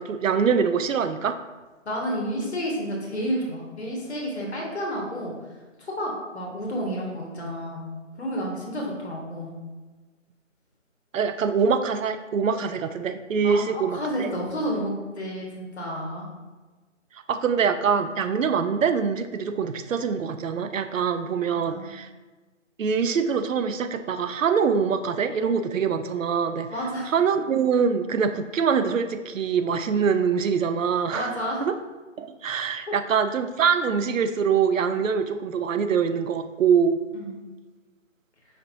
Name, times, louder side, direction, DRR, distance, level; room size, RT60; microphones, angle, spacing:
voice 1, 0.0-1.4 11.1-14.3 17.3-22.1 22.8-26.7 27.1-31.7 32.2-37.0, right 6 dB, 85° right, 9 dB, 0.5 m, -24 dB
voice 2, 1.8-5.3 5.8-7.9 8.2-9.5 13.4-16.2 21.5-21.9 26.7-27.1 31.1-31.6 37.1-37.3, equal, 55° left, -2 dB, 1.2 m, -30 dB
5.1 x 2.9 x 2.6 m, 1.3 s
figure-of-eight pair, 170°, 38 cm